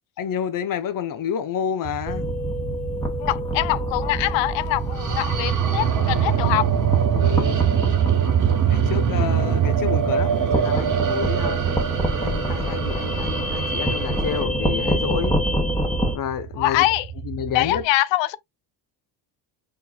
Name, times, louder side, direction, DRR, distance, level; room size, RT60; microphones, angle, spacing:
voice 1, 0.2-2.3 7.1-7.6 8.6-11.6 12.2-15.4 16.1-16.8 17.3-17.8, left 8 dB, 50° left, 0.8 m, -29 dB
sound 1, 1.8-17.8, right 9 dB, 85° right, 1.3 m, -34 dB
sound 2, 2.1-16.2, equal, 5° left, 1.4 m, -28 dB
voice 2, 3.2-6.7 16.6-17.1 17.5-18.4, left 16 dB, 85° left, 0.5 m, -23 dB
sound 3, 4.7-14.4, right 8 dB, 45° right, 1.1 m, -23 dB
4.2 x 3.8 x 2.3 m
cardioid pair, 150°, 43 cm